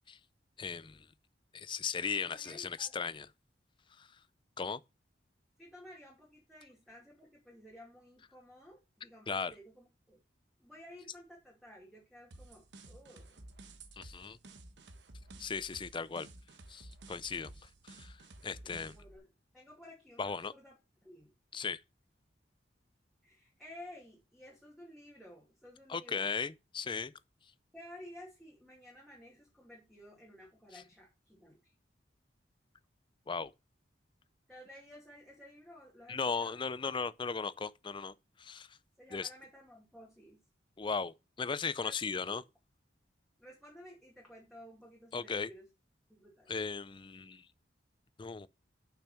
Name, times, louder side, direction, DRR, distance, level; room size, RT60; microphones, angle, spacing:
voice 1, 0.6-1.1 1.5-3.3 4.0-4.1 4.6-4.8 9.3-9.5 14.0-14.4 15.4-16.3 16.7-18.2 18.4-18.9 20.2-20.5 21.5-21.8 25.9-27.1 33.3-33.5 36.1-38.8 39.1-39.3 40.8-42.4 45.1-45.5 46.5-47.5 48.2-48.5, left 5 dB, 25° left, 0.4 m, -37 dB
voice 2, 2.2-3.1 5.6-10.2 10.6-13.4 18.6-19.3 19.5-20.8 21.0-21.7 23.2-26.3 27.7-31.7 34.5-36.6 39.0-40.4 41.8-42.0 42.3-42.5 43.4-45.7 46.1-46.5, left 1 dB, ahead, 2.3 m, -54 dB
sound 1, 12.3-19.2, right 2 dB, 70° right, 1.2 m, -53 dB
6.9 x 5.9 x 5.6 m
head